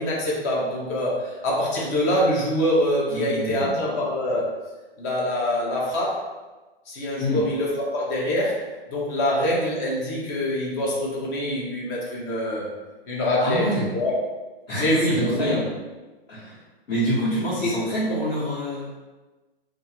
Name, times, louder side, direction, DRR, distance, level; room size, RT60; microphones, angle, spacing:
voice 1, 0.0-4.5 5.0-6.2 6.9-8.6 8.9-12.7 13.1-14.1 14.7-15.6 18.1-18.2, left 1 dB, 20° left, -4 dB, 0.4 m, -24 dB
voice 2, 3.1-3.8 7.2-7.4 13.4-13.9 14.7-15.8 16.3-16.6 16.9-19.0, equal, 80° left, -12 dB, 1.1 m, -27 dB
2.3 x 2.2 x 2.7 m, 1.2 s
hypercardioid pair, 135°, 31 cm